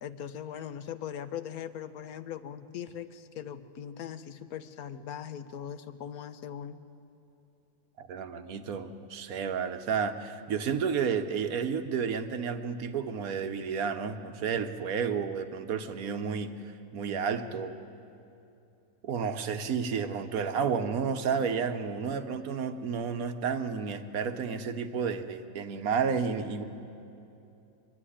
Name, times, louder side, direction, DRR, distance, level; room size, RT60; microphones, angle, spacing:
voice 1, 0.0-6.8, left 9 dB, 65° left, 10 dB, 1.2 m, -40 dB
voice 2, 8.0-17.7 19.0-26.6, right 6 dB, 60° right, 9 dB, 1.3 m, -31 dB
24.5 x 12.0 x 10.0 m, 2.8 s
omnidirectional pair, 1.8 m